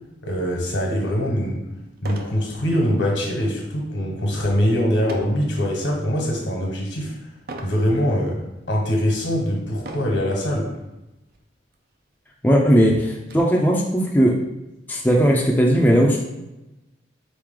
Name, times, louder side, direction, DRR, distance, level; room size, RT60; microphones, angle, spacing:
voice 1, 0.2-1.6 2.0-7.1 7.6-8.4 8.7-10.7, equal, 80° left, -1 dB, 1.3 m, -23 dB
sound 1, 2.0-2.4 2.9-3.2 5.1-5.4 6.1-6.5 7.5-7.8 8.6-8.7 9.8-10.3 11.3-11.4 11.7-11.8 12.3-13.4, right 2 dB, 55° right, 0.5 m, -37 dB
voice 2, 12.4-14.4 14.9-16.2, equal, 10° left, -2 dB, 0.4 m, -17 dB
4.1 x 3.1 x 3.7 m, 0.97 s
head